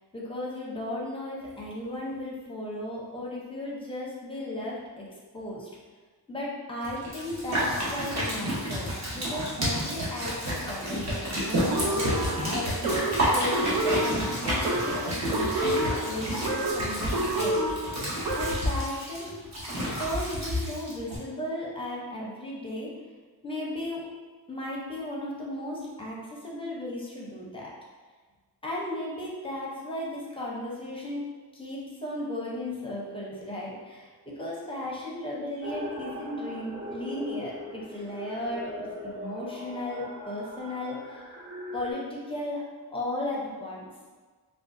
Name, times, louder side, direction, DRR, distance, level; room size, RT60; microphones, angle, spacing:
voice 1, 0.1-5.1 5.3-5.7 6.3-13.0 13.3-17.6 18.3-19.3 19.6-22.9 23.4-24.0 24.5-27.7 28.6-31.2 31.5-41.3 41.7-42.6 42.9-43.8, left 1 dB, 15° left, -4 dB, 0.6 m, -35 dB
sound 1, 6.8-21.2, equal, 40° right, 1.0 m, -30 dB
sound 2, 11.7-18.8, right 1 dB, 70° right, 0.5 m, -29 dB
sound 3, 35.6-41.9, left 1 dB, 85° right, 1.2 m, -40 dB
3.6 x 2.3 x 2.5 m, 1.4 s
wide cardioid pair, 135°, 40 cm